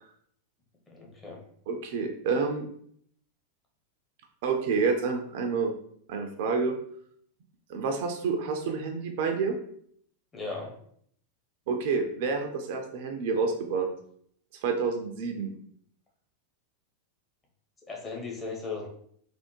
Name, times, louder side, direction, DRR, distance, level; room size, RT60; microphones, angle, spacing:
voice 1, 0.9-1.4 10.3-10.7 17.9-18.9, left 4 dB, 20° left, -1 dB, 0.9 m, -37 dB
voice 2, 1.7-2.6 4.4-5.7 6.1-6.8 7.7-9.5 11.7-13.9 14.6-15.5, right 5 dB, 50° right, 4 dB, 0.4 m, -28 dB
3.4 x 2.1 x 2.9 m, 0.65 s
figure-of-eight pair, 90°, 0 cm